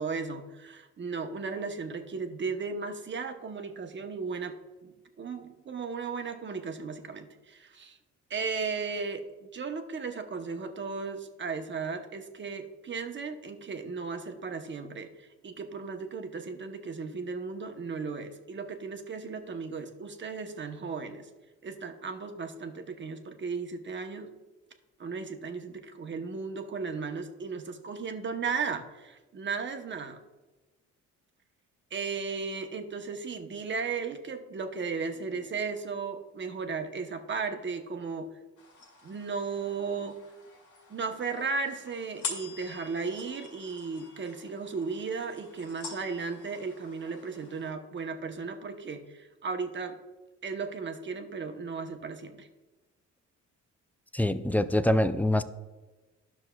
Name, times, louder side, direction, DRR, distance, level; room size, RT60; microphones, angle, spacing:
voice 1, 0.0-4.6 4.8-8.0 8.3-21.3 21.6-24.4 25.0-30.2 31.9-38.3 39.0-40.2 40.9-50.0 50.4-52.5, right 5 dB, 40° right, 6 dB, 0.8 m, -35 dB
sound 1, 38.6-47.7, left 4 dB, 80° left, 2.1 m, -45 dB
voice 2, 54.1-55.4, left 1 dB, 5° left, 11 dB, 0.3 m, -25 dB
12.0 x 6.1 x 2.3 m, 1.2 s
cardioid pair, 90°, 30 cm